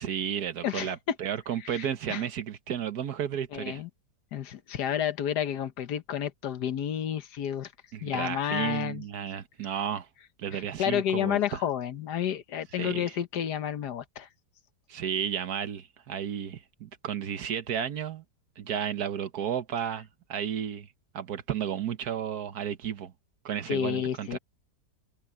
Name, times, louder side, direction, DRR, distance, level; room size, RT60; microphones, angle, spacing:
voice 1, 0.0-3.8 7.9-10.1 10.4-11.6 12.8-13.1 14.9-18.2 18.6-20.9 21.1-23.1 23.4-24.4, right 9 dB, 65° right, 1.5 m, -33 dB
voice 2, 0.6-1.1 1.6-2.2 3.5-3.9 4.3-7.7 8.0-9.0 10.5-14.3 23.7-24.4, left 9 dB, 75° left, 1.6 m, -31 dB
omnidirectional pair, 1.8 m